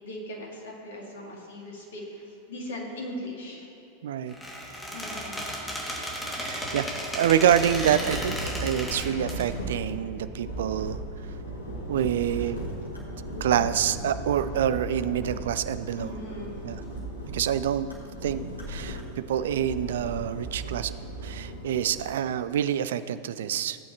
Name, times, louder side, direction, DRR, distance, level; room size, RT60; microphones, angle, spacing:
voice 1, 0.0-3.6 4.9-5.4 15.9-16.6, left 1 dB, 60° left, -2 dB, 2.5 m, -39 dB
voice 2, 4.0-4.3 6.4-6.8 7.1-11.0 11.9-12.6 13.4-16.1 16.6-16.8 17.3-17.9 18.2-18.4 18.7-19.0 19.3-20.9 21.2-23.8, right 10 dB, 60° right, 13 dB, 0.4 m, -26 dB
Squeak, 4.3-9.4, equal, 10° left, 2.0 m, -34 dB
sound 1, 7.3-22.1, right 1 dB, 90° right, 1.9 m, -37 dB
16.0 x 8.6 x 2.9 m, 2.9 s
figure-of-eight pair, 90°, 0 cm